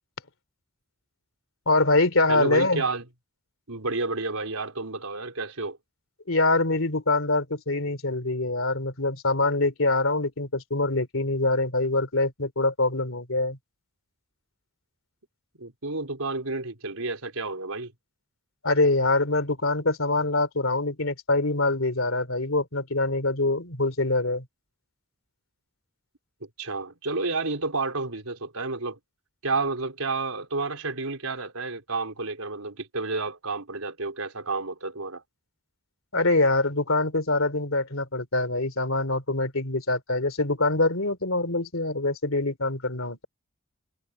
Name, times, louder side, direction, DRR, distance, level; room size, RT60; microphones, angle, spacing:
voice 1, 1.7-2.8 6.3-13.6 18.6-24.4 36.1-43.3, left 2 dB, 65° left, 3.2 m, -24 dB
voice 2, 2.3-3.1 3.7-5.8 15.6-17.9 26.6-29.0 29.4-35.2, right 3 dB, 75° right, 4.1 m, -30 dB
head